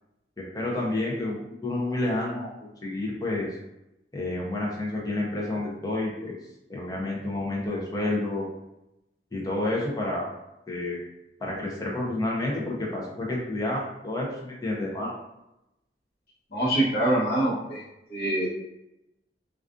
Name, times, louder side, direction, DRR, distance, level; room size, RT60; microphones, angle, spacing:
voice 1, 0.4-3.5 4.1-6.3 6.7-8.5 9.3-10.3 10.7-11.0 11.4-15.1, left 2 dB, 20° left, -3 dB, 0.5 m, -29 dB
voice 2, 16.5-17.8 18.1-18.5, right 1 dB, 60° left, -7 dB, 1.0 m, -24 dB
2.4 x 2.3 x 2.4 m, 0.90 s
head